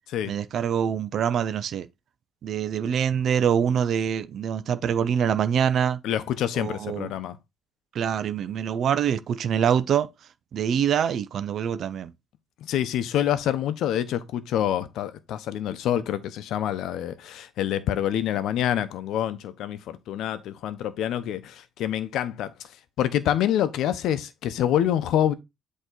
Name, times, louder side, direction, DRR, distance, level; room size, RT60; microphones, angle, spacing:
voice 1, 0.3-1.9 2.4-6.0 6.5-7.1 7.9-10.1 10.5-12.1, right 8 dB, 60° right, 0.6 m, -25 dB
voice 2, 6.0-7.4 12.6-22.5 23.0-25.3, left 11 dB, 70° left, 0.8 m, -26 dB
8.2 x 3.1 x 3.9 m
hypercardioid pair, 60°, 0 cm